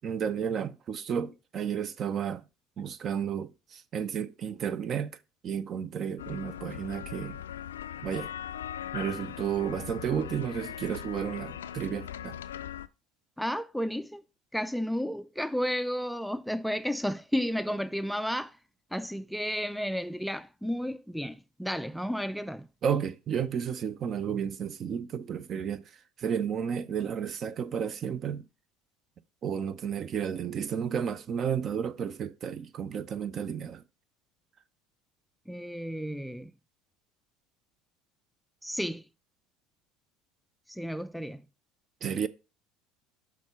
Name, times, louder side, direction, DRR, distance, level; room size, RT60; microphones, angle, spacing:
voice 1, 0.0-2.4 2.8-5.2 5.4-7.4 8.0-8.3 8.9-12.4 22.8-25.8 26.2-28.4 29.4-33.8 42.0-42.3, right 8 dB, 45° right, 0.6 m, -32 dB
sound 1, 6.2-12.9, left 10 dB, 85° left, 0.3 m, -40 dB
voice 2, 13.4-14.2 14.5-18.6 18.9-22.7 35.5-36.5 38.6-39.0 40.7-41.4, equal, ahead, 0.3 m, -32 dB
6.3 x 3.6 x 5.7 m
hypercardioid pair, 70°, 0 cm